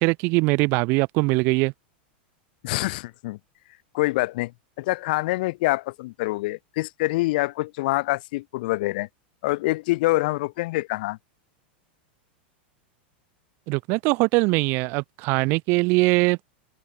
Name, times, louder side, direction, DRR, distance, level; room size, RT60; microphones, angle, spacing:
voice 1, 0.0-1.7 13.7-16.4, right 27 dB, 40° right, 1.6 m, -21 dB
voice 2, 2.6-3.4 3.9-4.5 4.8-9.1 9.4-11.2, left 20 dB, 55° left, 2.7 m, -25 dB
open air
supercardioid pair, 165°, 6 cm